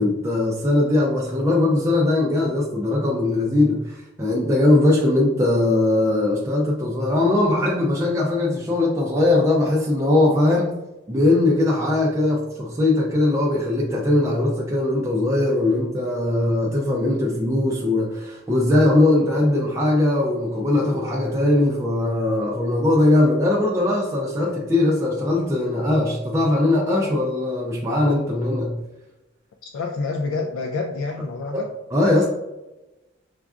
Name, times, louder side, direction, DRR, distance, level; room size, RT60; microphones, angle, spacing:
voice 1, 0.0-10.7 11.1-28.8 31.5-31.6 31.9-32.3, left 2 dB, 15° right, -3 dB, 0.3 m, -20 dB
voice 2, 29.6-31.7, left 3 dB, 85° left, 3 dB, 0.3 m, -28 dB
5.0 x 2.3 x 2.3 m, 1.0 s
head